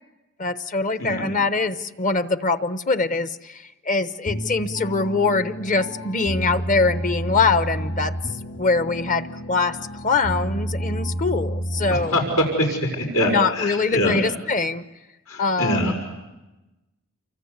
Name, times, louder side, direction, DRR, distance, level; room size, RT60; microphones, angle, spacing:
voice 1, 0.4-8.2 8.6-9.8 10.0-12.2 13.3-14.8 15.4-16.0, left 4 dB, 35° left, 11 dB, 1.0 m, -23 dB
sound 1, 4.2-12.3, equal, 55° left, 3.5 m, -30 dB
voice 2, 11.9-14.2 15.3-15.9, equal, 85° left, 2 dB, 6.0 m, -23 dB
29.0 x 24.5 x 8.2 m, 1.1 s
head